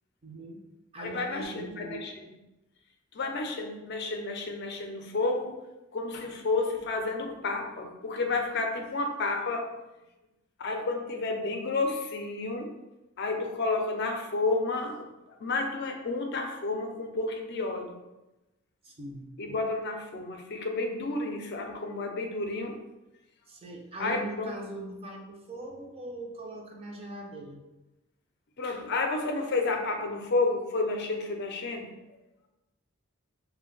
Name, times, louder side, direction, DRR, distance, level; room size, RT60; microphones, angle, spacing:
voice 1, 0.2-0.6 0.9-2.1 18.8-19.3 23.5-27.6, right 1 dB, 30° right, 0 dB, 0.5 m, -41 dB
voice 2, 1.0-2.1 3.1-5.6 5.9-9.7 10.6-12.7 13.2-15.1 15.4-18.0 19.4-22.8 24.0-24.5 28.6-31.9, left 3 dB, 55° left, 3 dB, 0.5 m, -31 dB
2.5 x 2.2 x 3.8 m, 1.0 s
head